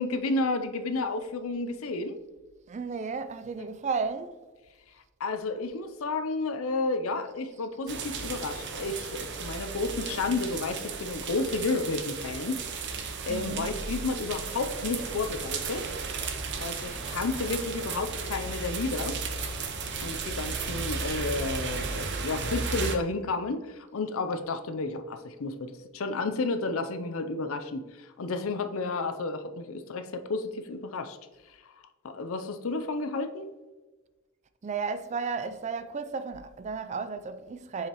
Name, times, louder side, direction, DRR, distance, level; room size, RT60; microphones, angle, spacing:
voice 1, 0.0-2.2 3.6-3.7 5.2-12.6 12.9-15.9 16.6-19.2 20.0-31.2 32.0-33.5, left 3 dB, 70° left, 0.6 m, -31 dB
voice 2, 2.7-4.4 13.3-13.7 34.6-37.9, right 5 dB, 35° right, 0.4 m, -33 dB
sound 1, 7.9-23.0, right 4 dB, 55° right, 0.7 m, -34 dB
7.0 x 4.9 x 3.0 m
head